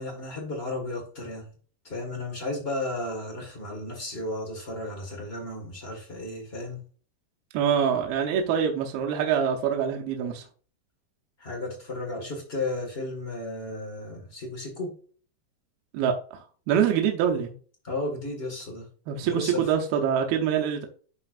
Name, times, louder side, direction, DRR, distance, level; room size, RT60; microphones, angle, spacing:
voice 1, 0.0-1.5 1.8-6.8 11.4-14.9 17.8-18.9 19.2-19.6, left 2 dB, 80° left, 0.5 m, -34 dB
voice 2, 7.5-10.4 15.9-16.4 16.7-17.5 19.1-20.9, right 8 dB, 80° right, 2.6 m, -25 dB
11.0 x 4.4 x 2.5 m
omnidirectional pair, 4.5 m